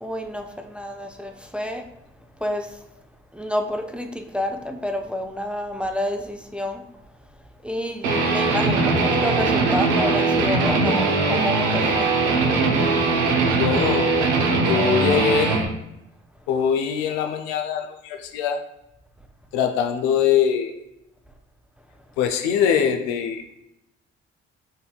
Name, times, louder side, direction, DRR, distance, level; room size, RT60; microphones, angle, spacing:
voice 1, 0.0-1.8 2.4-2.8 3.3-6.8 7.6-12.1, left 1 dB, 5° right, 4 dB, 0.4 m, -28 dB
Guitar, 8.0-15.6, right 3 dB, 85° right, 0.6 m, -20 dB
voice 2, 13.4-14.1 14.6-15.5 16.5-18.6 19.5-20.7 22.2-23.4, left 8 dB, 80° left, 5 dB, 0.5 m, -22 dB
5.2 x 2.6 x 2.3 m, 0.86 s
hypercardioid pair, 45°, 32 cm